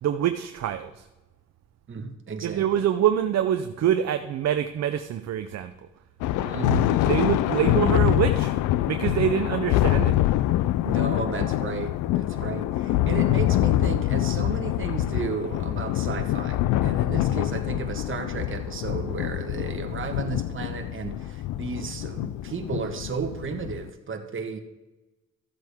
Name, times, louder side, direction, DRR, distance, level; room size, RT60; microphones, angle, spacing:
voice 1, 0.0-1.0 2.4-5.7 7.1-8.5 8.9-10.1, right 10 dB, 60° right, 8 dB, 0.7 m, -25 dB
voice 2, 1.9-2.8 6.4-7.3 10.8-24.6, right 5 dB, 40° right, 5 dB, 1.5 m, -33 dB
Thunder, 6.2-23.9, left 14 dB, 85° left, 0.5 m, -25 dB
14.5 x 7.7 x 3.6 m, 1.1 s
cardioid pair, 90°, 30 cm